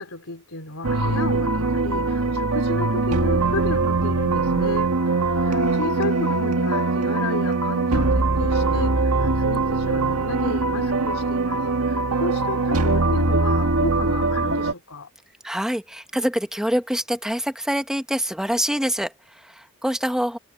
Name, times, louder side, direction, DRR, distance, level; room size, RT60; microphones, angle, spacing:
voice 1, 0.0-4.9 5.4-15.1, left 3 dB, 70° left, 3.9 m, -32 dB
sound 1, 0.8-14.7, right 3 dB, 85° right, 1.8 m, -22 dB
voice 2, 15.4-20.4, equal, 5° right, 1.3 m, -25 dB
head